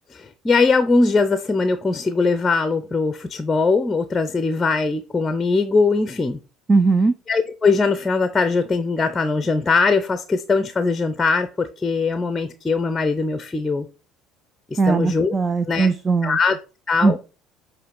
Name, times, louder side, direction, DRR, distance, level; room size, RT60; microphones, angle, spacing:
voice 1, 0.1-6.4 7.3-13.9 14.7-15.3 15.7-15.9 16.2-16.6 16.9-17.2, left 4 dB, 20° left, 0.7 m, -21 dB
voice 2, 6.7-7.1 14.8-16.4 17.0-17.2, right 4 dB, 25° right, 0.5 m, -19 dB
9.2 x 3.3 x 4.6 m
hypercardioid pair, 75°, 0 cm